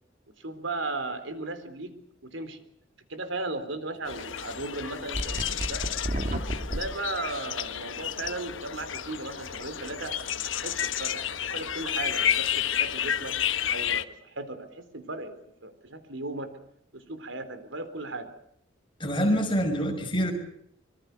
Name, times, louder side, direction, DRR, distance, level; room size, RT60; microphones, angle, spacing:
voice 1, 0.3-2.6 3.1-6.0 6.6-13.4 13.7-16.5 16.9-18.3, right 2 dB, 85° right, 10 dB, 3.8 m, -36 dB
sound 1, 4.1-14.0, left 9 dB, 90° left, 1.2 m, -31 dB
sound 2, 5.1-6.8, right 1 dB, 40° right, 3.0 m, -30 dB
voice 2, 19.0-20.3, equal, 25° left, 3 dB, 5.7 m, -25 dB
25.5 x 23.5 x 6.7 m, 0.70 s
head